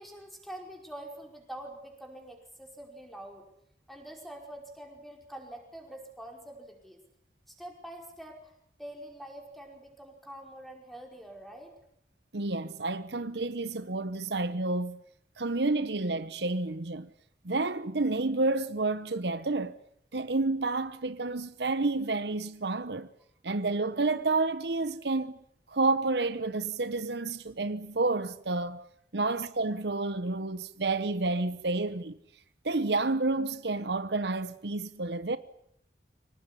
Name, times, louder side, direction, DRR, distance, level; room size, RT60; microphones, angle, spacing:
voice 1, 0.0-3.4 3.9-7.0 7.5-8.5 8.8-11.8, right 1 dB, ahead, 5.2 m, -45 dB
voice 2, 12.3-15.0 15.4-17.1 17.4-19.8 20.1-23.1 23.4-25.4 25.7-28.8 29.1-32.2 32.6-35.4, right 3 dB, 75° right, 1.1 m, -30 dB
25.5 x 18.5 x 9.9 m
head